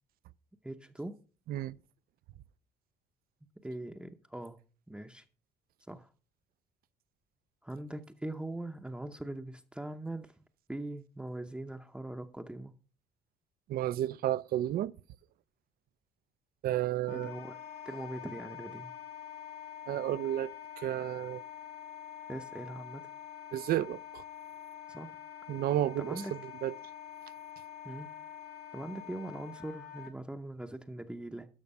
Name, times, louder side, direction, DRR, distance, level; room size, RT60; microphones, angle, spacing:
voice 1, 0.6-1.2 3.6-4.6 4.9-5.2 5.9-6.1 7.6-10.3 10.7-12.7 17.1-17.6 17.8-18.9 22.3-23.0 24.9-25.2 26.0-26.3 27.8-28.1 28.7-31.5, right 1 dB, 5° right, 0.7 m, -41 dB
voice 2, 13.7-14.9 16.6-17.3 19.9-20.5 20.8-21.4 23.5-24.2 25.5-26.2 26.6-26.7, right 13 dB, 60° right, 0.5 m, -31 dB
Wind instrument woodwind instrument, 17.1-30.1, left 10 dB, 70° left, 1.9 m, -46 dB
12.5 x 5.9 x 5.4 m
cardioid pair, 110°, 17 cm